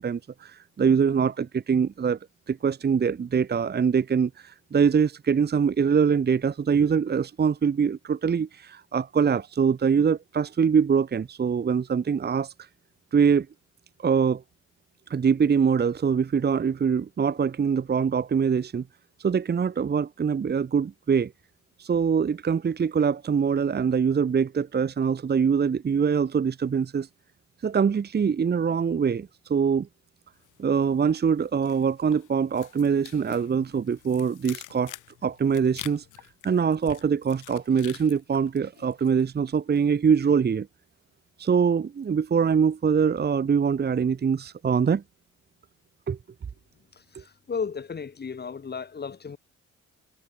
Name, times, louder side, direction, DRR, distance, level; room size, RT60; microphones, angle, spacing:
voice 1, 0.0-2.2 2.5-12.7 13.1-13.5 14.0-14.4 15.1-18.9 19.2-21.3 21.8-27.1 27.6-29.9 30.6-34.9 35.2-36.0 36.4-40.7 41.4-45.0 46.1-46.2 47.1-47.2, right 6 dB, 35° right, 1.0 m, -23 dB
sound 1, 30.4-31.1 31.4-39.3 39.6-39.9, left 15 dB, 85° left, 2.8 m, -46 dB
voice 2, 47.1-49.4, left 5 dB, 35° left, 1.8 m, -34 dB
cardioid pair, 90°, 30 cm